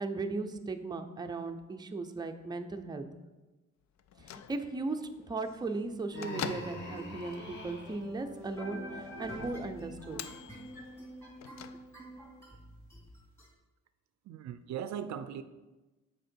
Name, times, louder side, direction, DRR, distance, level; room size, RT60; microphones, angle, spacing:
voice 1, 0.0-3.1 4.2-10.2, right 3 dB, 15° right, 6 dB, 0.5 m, -37 dB
Bell / Microwave oven, 4.0-12.3, left 9 dB, 60° left, 0.5 m, -47 dB
Human voice, 6.1-8.0, left 1 dB, 35° left, 1.9 m, -43 dB
sound 1, 6.6-13.5, equal, 10° left, 2.3 m, -47 dB
voice 2, 14.2-15.4, right 9 dB, 65° right, 12 dB, 0.4 m, -38 dB
6.4 x 4.4 x 4.4 m, 1.1 s
cardioid pair, 90°, 30 cm